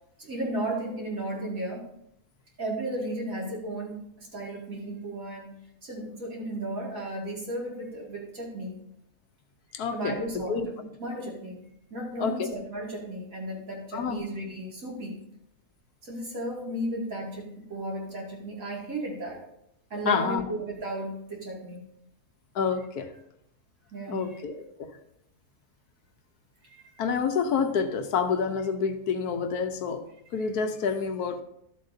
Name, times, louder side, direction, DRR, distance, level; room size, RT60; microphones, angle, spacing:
voice 1, 0.2-1.8 2.6-5.6 5.8-8.8 9.9-11.6 11.9-15.2 16.0-19.4 19.9-21.8 23.9-24.4 26.6-26.9, right 1 dB, 55° right, -3 dB, 2.7 m, -34 dB
voice 2, 9.7-10.2 10.5-10.7 12.2-12.5 13.9-14.2 20.0-20.4 22.5-23.1 24.1-24.9 27.0-30.0 30.3-31.4, left 6 dB, 75° left, 8 dB, 1.2 m, -28 dB
13.0 x 7.7 x 2.7 m, 0.76 s
omnidirectional pair, 1.7 m